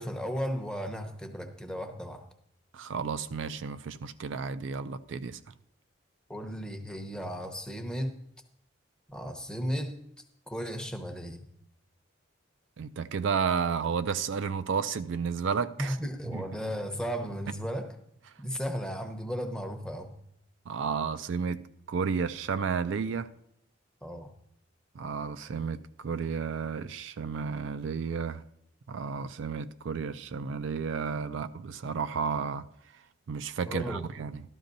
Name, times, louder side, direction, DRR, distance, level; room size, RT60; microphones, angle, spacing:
voice 1, 0.0-2.2 6.3-8.1 9.1-10.0 10.5-11.5 15.8-18.0 18.4-20.1 24.0-24.3 33.7-34.1, equal, 5° left, 0.8 m, -35 dB
voice 2, 2.7-5.4 12.8-16.0 16.3-16.4 20.7-21.6 21.9-23.3 25.0-28.4 28.9-32.6 33.3-34.4, right 6 dB, 65° right, 0.4 m, -32 dB
13.0 x 12.5 x 2.6 m
head